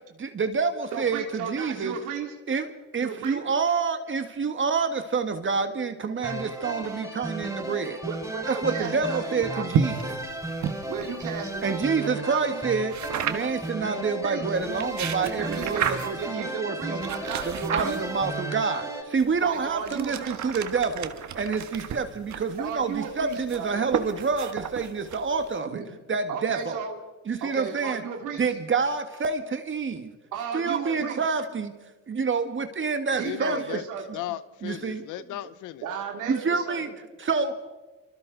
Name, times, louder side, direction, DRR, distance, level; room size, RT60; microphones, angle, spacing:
voice 1, 0.2-2.0 2.5-8.0 8.5-10.3 11.6-13.0 13.2-17.1 17.4-25.8 26.1-26.8 27.3-28.0 28.4-30.1 30.5-31.7 32.1-33.8 34.6-35.1 36.3-36.9 37.2-37.5, right 5 dB, 40° right, 8 dB, 1.7 m, -28 dB
voice 2, 0.9-2.3 3.0-3.5 6.2-6.4 8.0-9.7 10.9-12.7 14.2-14.6 15.2-18.1 19.4-20.4 22.6-23.9 25.6-25.8 26.3-27.0 27.4-28.5 30.3-31.2 33.2-34.0 35.8-36.8, right 7 dB, 90° right, 1 dB, 2.9 m, -35 dB
sound 1, 6.2-19.0, right 1 dB, 10° right, 5.7 m, -34 dB
sound 2, 9.7-11.9 12.9-13.7 14.6-16.3 17.0-18.4 19.2-25.6, right 7 dB, 65° right, 1.6 m, -33 dB
voice 3, 33.2-33.8 34.1-35.9, left 14 dB, 85° left, 15 dB, 0.7 m, -35 dB
27.0 x 24.5 x 4.0 m, 1.2 s
cardioid pair, 90°, 30 cm